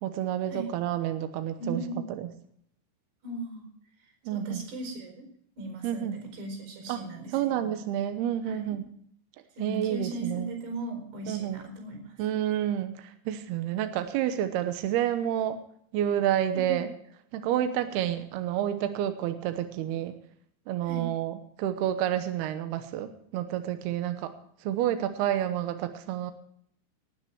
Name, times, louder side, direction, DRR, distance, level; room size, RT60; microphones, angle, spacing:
voice 1, 0.0-1.8 2.2-2.3 4.3-4.6 5.8-6.2 6.9-7.0 7.3-8.9 9.6-10.5 11.3-11.6 12.2-15.6 15.9-16.9 17.3-20.1 20.7-24.3 24.6-26.3, right 11 dB, 85° right, 9 dB, 2.3 m, -29 dB
voice 2, 1.6-2.1 3.2-3.7 4.0-5.2 5.6-7.8 8.5-8.8 9.5-12.1 16.5-16.8 20.8-21.1, right 2 dB, 55° right, 4 dB, 6.5 m, -38 dB
18.5 x 9.7 x 4.5 m, 0.68 s
omnidirectional pair, 5.9 m